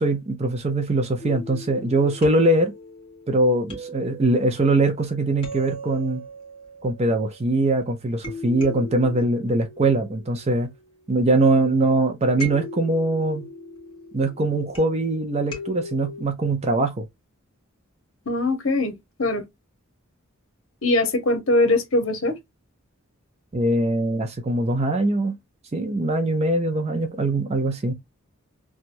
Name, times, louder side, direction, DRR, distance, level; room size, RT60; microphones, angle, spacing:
voice 1, 0.0-2.7 3.3-6.2 6.8-10.7 11.1-13.5 14.1-17.1 23.5-25.4 25.7-27.9, right 2 dB, 30° right, 0.5 m, -22 dB
sound 1, 1.2-7.6 8.2-11.2 12.4-16.2, equal, 25° left, 1.3 m, -39 dB
voice 2, 18.3-19.4 20.8-22.4, left 2 dB, 75° left, 0.9 m, -22 dB
3.0 x 2.3 x 2.5 m
head